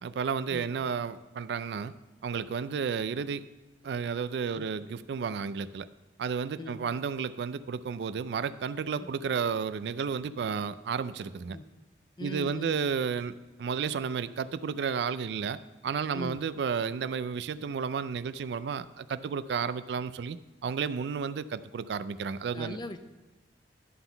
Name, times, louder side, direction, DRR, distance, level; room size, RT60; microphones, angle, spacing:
voice 1, 0.0-1.9 2.2-3.4 3.8-5.9 6.2-11.6 12.2-22.8, right 6 dB, 70° right, 15 dB, 0.3 m, -32 dB
voice 2, 12.2-12.8 16.1-16.4 22.5-23.0, left 2 dB, 25° left, 9 dB, 0.5 m, -39 dB
11.0 x 3.8 x 6.9 m, 1.1 s
head